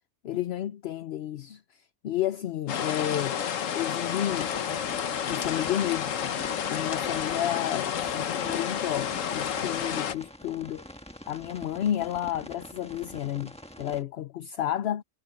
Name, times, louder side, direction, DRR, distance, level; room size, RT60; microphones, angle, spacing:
voice 1, 0.2-3.4 3.7-4.5 5.3-6.3 6.7-10.9 11.3-15.0, left 11 dB, 60° left, 0.8 m, -31 dB
sound 1, 2.7-10.1, left 8 dB, 85° left, 1.3 m, -30 dB
sound 2, 4.3-14.0, left 1 dB, 5° left, 1.4 m, -46 dB
omnidirectional pair, 1.3 m